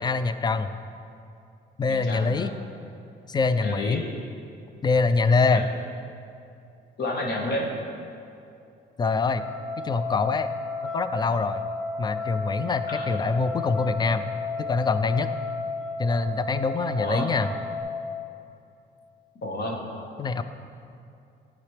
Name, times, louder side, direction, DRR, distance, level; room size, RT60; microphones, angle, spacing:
voice 1, 0.0-0.7 1.8-2.5 3.3-4.0 4.8-5.6 9.0-9.4 9.8-10.5 10.8-11.6 12.0-14.3 14.6-15.3 16.0-17.5 20.2-20.4, left 4 dB, 20° left, 11 dB, 0.3 m, -24 dB
voice 2, 1.9-2.6 3.6-4.0 5.5-5.7 7.0-7.7 12.9-13.1 16.9-17.3 19.4-19.8, left 2 dB, 60° left, 0 dB, 1.3 m, -30 dB
sound 1, 9.2-17.8, left 3 dB, 5° left, 1.3 m, -33 dB
10.5 x 5.1 x 3.3 m, 2.6 s
cardioid pair, 90°, 20 cm